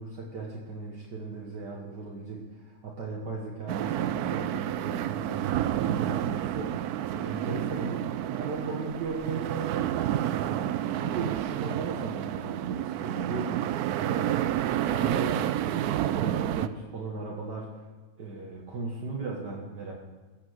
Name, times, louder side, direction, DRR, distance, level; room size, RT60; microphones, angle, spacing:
voice 1, 0.0-17.7 18.2-19.9, right 4 dB, 60° right, -2 dB, 2.0 m, -37 dB
sound 1, 3.7-16.7, right 12 dB, 80° right, 0.8 m, -30 dB
15.0 x 8.7 x 6.5 m, 1.3 s
omnidirectional pair, 2.2 m